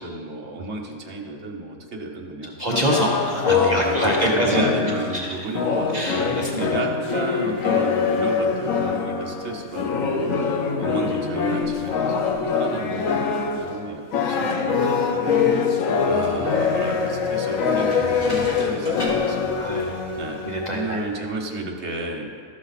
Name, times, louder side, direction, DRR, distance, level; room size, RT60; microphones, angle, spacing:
voice 1, 0.0-2.6 3.5-6.3 6.7-15.2 16.1-22.4, right 2 dB, 55° right, 1 dB, 1.4 m, -32 dB
voice 2, 2.6-4.6 5.1-5.5 5.9-6.7 19.6-20.0 20.4-21.3, right 1 dB, 40° right, -1 dB, 0.7 m, -26 dB
sound 1, 2.7-13.8 14.1-20.9, left 5 dB, 75° left, 1.2 m, -23 dB
sound 2, 16.0-21.4, right 1 dB, 20° left, 2.9 m, -40 dB
13.5 x 6.1 x 4.1 m, 2.1 s
omnidirectional pair, 1.4 m